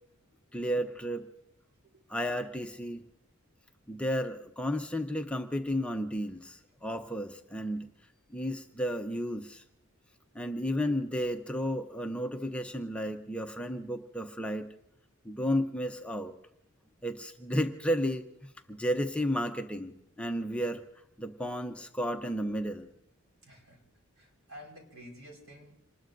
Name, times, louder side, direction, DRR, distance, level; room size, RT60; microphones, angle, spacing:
voice 1, 0.5-1.3 2.1-3.0 3.9-7.9 8.3-9.6 10.3-14.7 15.2-16.3 17.0-18.2 18.7-20.8 21.2-22.9, equal, 5° left, 4 dB, 0.6 m, -32 dB
voice 2, 23.4-23.8 24.2-25.9, equal, 65° right, 1 dB, 4.5 m, -52 dB
27.5 x 20.0 x 2.6 m, 0.80 s
head